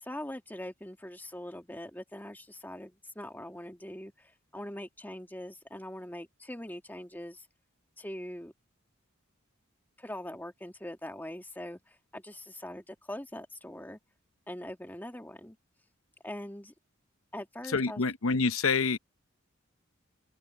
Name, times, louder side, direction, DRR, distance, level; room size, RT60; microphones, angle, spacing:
voice 1, 0.0-7.5 8.0-8.5 10.0-14.0 14.5-15.6 16.2-16.7 17.3-18.0, left 1 dB, 10° left, 2.1 m, -42 dB
voice 2, 17.7-19.0, left 4 dB, 80° left, 0.8 m, -27 dB
open air
head